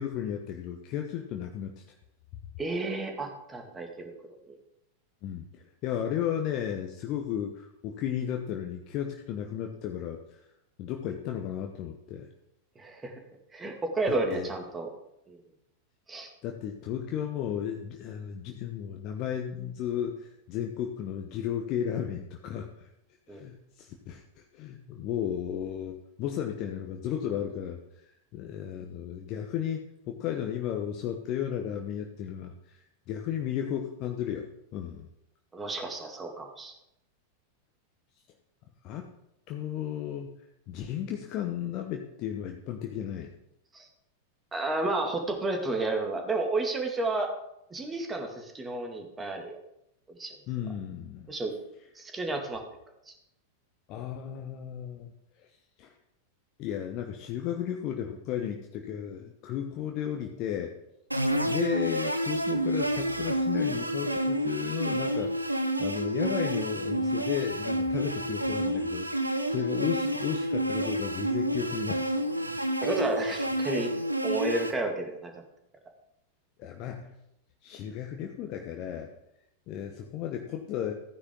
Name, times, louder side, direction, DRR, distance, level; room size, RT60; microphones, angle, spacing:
voice 1, 0.0-1.8 5.2-10.4 10.8-12.3 14.1-14.5 16.4-22.9 23.3-27.8 28.3-35.1 38.8-39.1 39.5-40.3 40.7-43.3 50.5-51.3 53.9-55.1 55.4-55.5 55.8-55.9 56.6-60.7 61.4-72.0 76.6-77.1 77.6-79.1 79.7-80.9, left 9 dB, 40° left, 3 dB, 1.1 m, -34 dB
voice 2, 2.6-4.1 4.5-4.6 12.8-13.1 13.5-14.9 15.3-15.4 16.1-16.3 23.3-23.4 35.5-36.7 43.7-43.9 44.5-47.3 47.7-49.6 50.1-50.4 51.3-51.5 52.0-52.6 53.1-53.2 72.8-73.9 74.2-75.4, right 2 dB, 15° right, 3 dB, 2.3 m, -31 dB
sound 1, 61.1-74.7, right 1 dB, 85° right, 0.9 m, -29 dB
15.0 x 9.8 x 3.8 m, 0.82 s
figure-of-eight pair, 90°, 0 cm